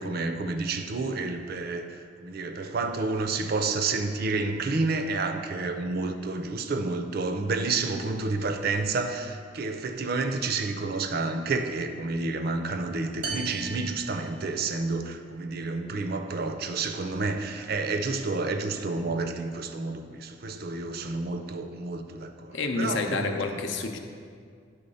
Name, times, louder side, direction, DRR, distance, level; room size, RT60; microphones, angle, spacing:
voice 1, 0.0-23.6, right 3 dB, 55° right, 7 dB, 0.5 m, -30 dB
sound 1, 13.2-15.0, right 3 dB, 75° right, 0.8 m, -37 dB
voice 2, 22.5-24.0, left 3 dB, 85° left, 5 dB, 0.7 m, -29 dB
9.3 x 3.7 x 5.5 m, 2.1 s
head